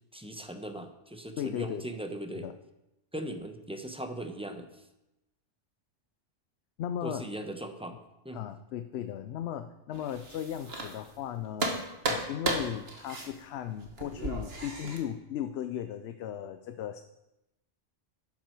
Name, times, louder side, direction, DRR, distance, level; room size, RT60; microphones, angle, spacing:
voice 1, 0.1-2.5 3.1-4.7 7.0-8.0 8.2-8.5, right 1 dB, 5° right, 6 dB, 0.8 m, -39 dB
voice 2, 1.4-1.9 2.4-2.6 6.8-7.3 8.3-11.7 12.1-17.0, left 10 dB, 65° left, 9 dB, 0.8 m, -36 dB
sound 1, 9.9-11.3 11.6-15.0, right 2 dB, 55° right, 1.8 m, -34 dB
11.5 x 9.6 x 4.6 m, 0.94 s
omnidirectional pair, 1.2 m